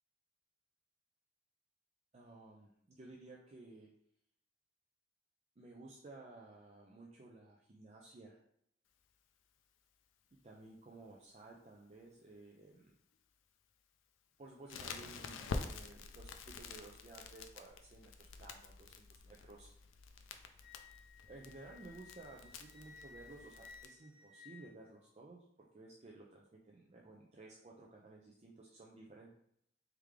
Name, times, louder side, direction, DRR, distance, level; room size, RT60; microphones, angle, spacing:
voice 1, 2.1-3.9 5.6-8.4 10.4-12.9 14.4-19.7 21.3-25.4 25.7-29.3, right 2 dB, 35° right, -2 dB, 0.5 m, -55 dB
Crackle, 14.7-23.9, left 4 dB, 85° left, 0.4 m, -48 dB
Wind instrument woodwind instrument, 20.6-25.2, left 5 dB, 55° left, 1.2 m, -58 dB
3.5 x 3.4 x 3.2 m, 0.71 s
head